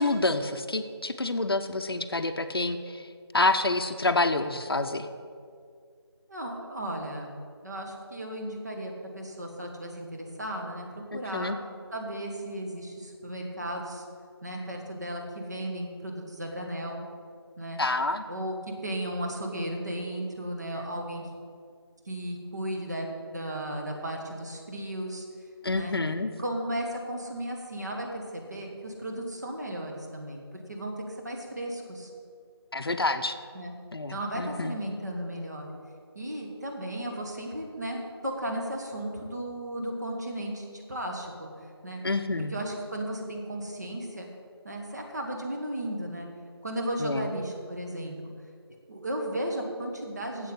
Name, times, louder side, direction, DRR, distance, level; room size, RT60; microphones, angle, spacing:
voice 1, 0.0-3.0 3.3-5.1 11.1-11.6 17.8-18.2 25.6-26.3 32.7-33.4 33.9-34.7 42.0-42.5 47.0-47.3, left 2 dB, 60° left, 8 dB, 0.7 m, -28 dB
voice 2, 6.3-7.3 7.6-10.9 11.1-11.6 11.9-14.0 14.4-17.0 17.6-17.8 18.3-18.6 18.8-21.2 22.0-25.2 25.7-25.9 26.4-30.4 30.7-32.1 33.5-33.7 34.1-35.7 36.1-41.5 41.8-42.0 42.5-44.3 44.6-46.3 46.6-48.3 48.9-50.5, right 1 dB, 40° right, 1 dB, 1.6 m, -35 dB
7.9 x 7.8 x 8.2 m, 2.2 s
figure-of-eight pair, 175°, 14 cm